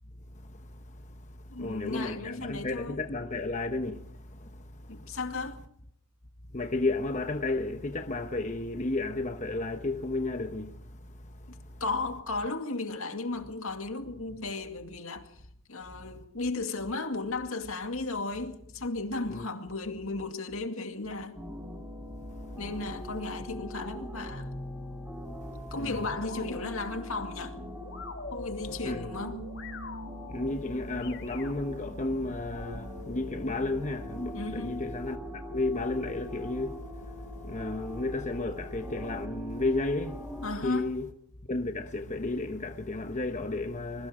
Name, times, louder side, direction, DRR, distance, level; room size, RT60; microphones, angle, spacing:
voice 1, 0.3-5.1 6.5-11.8 19.3-19.5 22.3-22.6 25.4-26.1 28.7-29.0 30.3-41.1 41.5-44.1, left 2 dB, 35° left, 1.0 m, -33 dB
voice 2, 1.5-3.0 4.9-5.6 11.5-15.4 15.7-21.4 22.6-24.5 25.7-27.6 28.3-29.5 34.3-34.8 40.4-40.9, left 3 dB, 75° left, 2.3 m, -35 dB
sound 1, 21.4-40.7, equal, 10° right, 4.1 m, -42 dB
sound 2, 24.3-32.9, left 2 dB, 60° left, 3.2 m, -45 dB
25.5 x 22.0 x 5.1 m
head